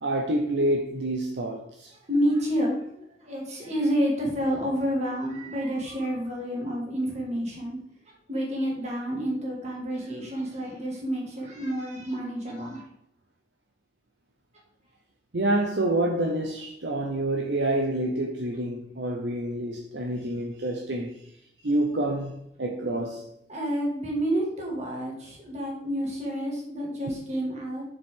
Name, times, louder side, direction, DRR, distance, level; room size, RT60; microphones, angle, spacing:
voice 1, 0.0-1.9 15.3-21.3 21.6-23.3, right 1 dB, 70° right, 0.8 m, -27 dB
voice 2, 2.1-7.8 8.3-12.9 23.5-27.8, equal, 40° right, 2.4 m, -29 dB
6.9 x 6.9 x 3.8 m
head